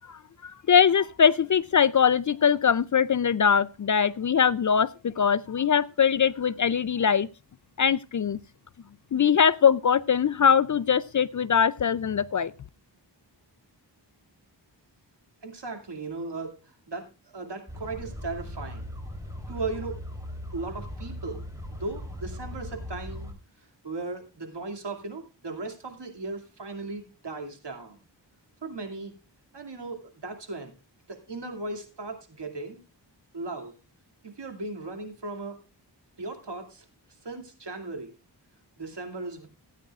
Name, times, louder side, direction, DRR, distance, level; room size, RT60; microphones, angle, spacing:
voice 1, 0.1-7.3 7.8-8.4 9.1-12.5, left 7 dB, 45° left, 0.4 m, -22 dB
voice 2, 15.4-18.9 19.5-20.0 20.5-23.3 23.8-28.0 28.6-29.1 29.5-30.7 31.1-32.8 33.3-33.8 34.2-35.6 36.2-36.9 37.2-38.1 38.8-39.5, right 3 dB, 65° right, 2.4 m, -37 dB
sound 1, 17.7-23.3, left 1 dB, 5° right, 3.2 m, -39 dB
17.0 x 9.2 x 2.4 m
wide cardioid pair, 60°, 44 cm